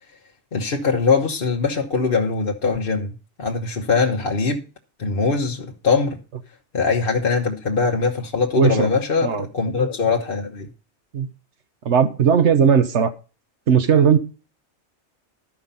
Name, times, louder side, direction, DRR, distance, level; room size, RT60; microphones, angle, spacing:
voice 1, 0.5-4.6 5.0-6.2 6.7-10.7, left 4 dB, 50° left, 1.3 m, -22 dB
voice 2, 8.6-8.9 9.2-9.5 11.1-11.3 11.8-13.1 13.7-14.2, right 7 dB, 75° right, 1.3 m, -17 dB
12.5 x 5.7 x 5.3 m
omnidirectional pair, 1.2 m